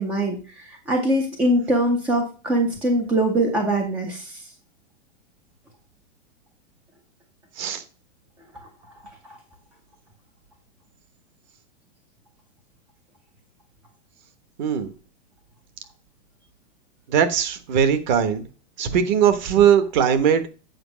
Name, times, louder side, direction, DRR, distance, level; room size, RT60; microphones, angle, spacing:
voice 1, 0.0-4.4, right 1 dB, 5° right, 3 dB, 0.4 m, -22 dB
voice 2, 14.6-14.9 17.1-18.4 18.8-20.5, right 8 dB, 40° right, 11 dB, 1.2 m, -20 dB
8.0 x 4.8 x 6.1 m, 0.34 s
supercardioid pair, 160°, 34 cm